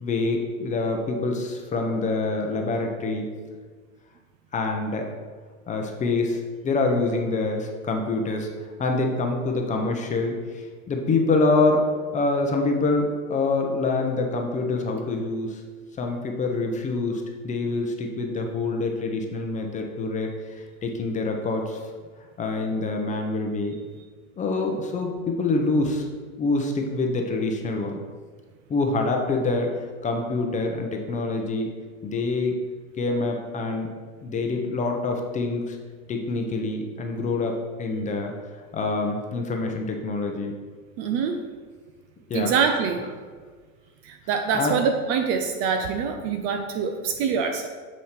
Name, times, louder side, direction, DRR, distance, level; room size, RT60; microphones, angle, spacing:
voice 1, 0.0-3.3 4.5-5.1 5.7-8.5 8.8-11.8 12.1-15.6 16.0-20.5 20.8-21.8 22.4-23.8 24.4-26.1 26.4-28.0 28.7-31.7 32.0-32.6 33.0-33.9 34.2-35.8 36.1-37.5 37.8-38.3 38.7-40.5 42.3-42.5 44.5-44.8, left 3 dB, 20° left, 2 dB, 0.8 m, -26 dB
voice 2, 41.0-41.4 42.3-43.0 44.0-47.7, right 6 dB, 35° right, 6 dB, 0.5 m, -25 dB
8.8 x 3.1 x 5.8 m, 1.5 s
hypercardioid pair, 130°, 42 cm